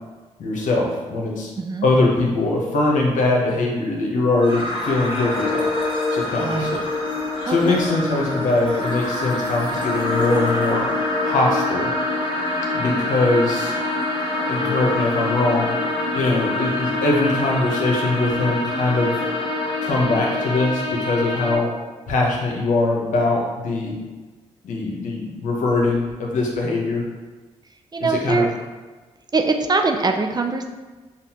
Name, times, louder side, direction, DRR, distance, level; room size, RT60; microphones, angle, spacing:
voice 1, 0.4-1.5 1.8-5.7 6.1-6.8 7.5-10.9 11.3-11.9 12.7-13.7 14.5-15.8 16.1-19.1 19.8-21.7 22.1-23.9 24.6-27.0 28.0-28.5, left 2 dB, 80° left, -1 dB, 0.9 m, -21 dB
voice 2, 1.6-1.9 6.4-6.8 7.4-7.8 27.9-28.5 29.3-30.7, right 3 dB, 30° right, 4 dB, 0.5 m, -22 dB
sound 1, 4.4-21.5, left 2 dB, 40° left, 1.3 m, -25 dB
5.3 x 2.4 x 2.8 m, 1.3 s
supercardioid pair, 50°, 13 cm